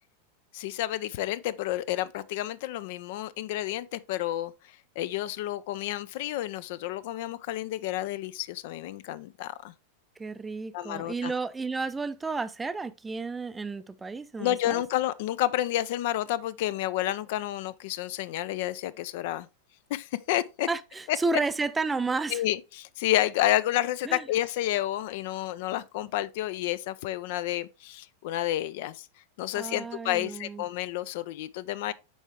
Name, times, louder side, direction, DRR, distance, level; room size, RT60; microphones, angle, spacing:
voice 1, 0.5-4.5 5.0-9.7 10.7-11.3 14.4-19.5 19.9-20.7 21.1-21.2 22.3-29.1 29.4-31.9, left 14 dB, 50° left, 0.3 m, -30 dB
voice 2, 10.2-14.8 20.7-22.4 24.1-24.2 29.5-30.6, right 3 dB, 10° right, 0.4 m, -32 dB
7.0 x 4.5 x 3.4 m
figure-of-eight pair, 90°, 0 cm